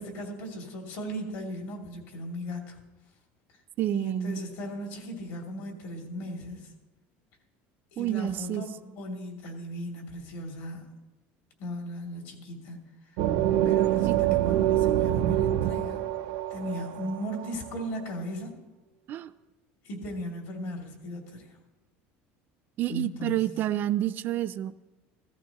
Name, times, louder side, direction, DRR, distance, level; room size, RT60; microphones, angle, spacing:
voice 1, 0.0-2.8 3.9-6.7 7.9-10.9 11.6-12.8 13.1-13.2 13.6-16.1 16.5-18.5 19.8-21.6 22.9-23.4, equal, 60° left, 1 dB, 2.7 m, -37 dB
voice 2, 3.8-4.4 8.0-8.6 14.1-14.2 19.1-19.3 22.8-24.7, right 12 dB, 40° right, 13 dB, 0.4 m, -29 dB
sound 1, 13.2-17.8, right 12 dB, 85° right, 0.7 m, -25 dB
15.5 x 14.5 x 3.0 m, 1.1 s
cardioid pair, 160°, 5 cm